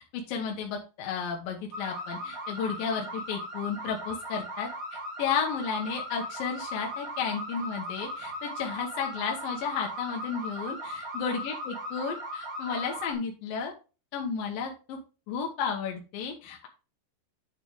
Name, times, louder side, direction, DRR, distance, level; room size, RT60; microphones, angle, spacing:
voice 1, 0.1-13.7 14.1-15.0 15.3-16.7, left 6 dB, 75° left, 1 dB, 2.7 m, -33 dB
sound 1, 1.7-13.1, equal, 30° right, 2.1 m, -38 dB
9.3 x 4.2 x 4.6 m, 0.33 s
omnidirectional pair, 4.3 m